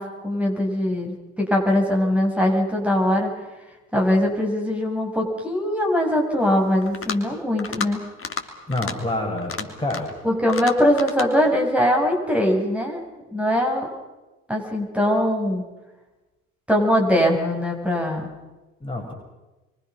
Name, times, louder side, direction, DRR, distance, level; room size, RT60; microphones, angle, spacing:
voice 1, 0.0-3.3 3.9-8.0 10.2-13.1 13.3-13.9 14.5-15.6 16.7-18.3, equal, 5° right, 0 dB, 6.7 m, -21 dB
sound 1, 6.8-7.3 7.6-7.9 8.2-8.4 8.7-8.9 9.4-10.2 10.5-11.3, left 5 dB, 35° left, 3.2 m, -31 dB
voice 2, 8.7-10.1 18.8-19.1, left 1 dB, 10° left, 1 dB, 6.4 m, -27 dB
29.5 x 24.0 x 6.2 m, 1.1 s
figure-of-eight pair, 50°, 40 cm